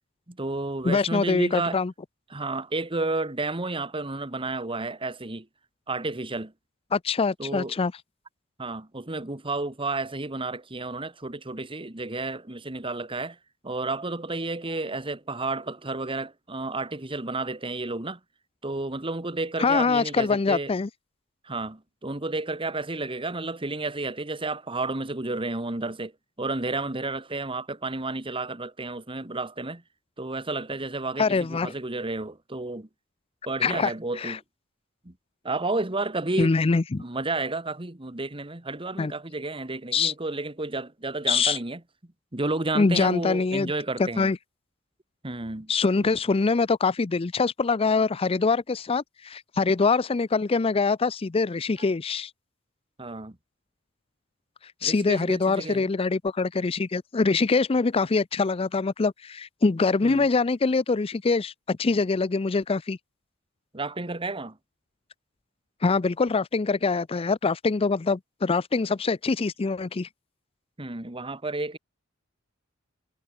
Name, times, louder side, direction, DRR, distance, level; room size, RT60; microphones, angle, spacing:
voice 1, 0.3-1.8 2.3-5.5 5.9-6.5 7.4-7.7 8.6-13.4 13.6-18.2 18.6-20.7 21.4-26.1 26.4-29.8 30.2-32.9 33.4-34.4 35.0-35.1 35.4-36.6 37.0-41.8 42.3-44.3 45.2-45.7 53.0-53.4 54.8-55.9 60.0-60.3 63.7-64.6 70.8-71.8, right 2 dB, 25° right, 1.6 m, -31 dB
voice 2, 0.8-1.9 6.9-7.9 19.6-20.9 31.2-31.7 33.6-33.9 34.2-34.4 36.4-37.0 39.0-39.1 39.9-40.1 41.3-41.6 42.7-43.7 44.0-44.4 45.7-52.3 54.8-63.0 65.8-70.1, left 4 dB, 25° left, 0.4 m, -24 dB
head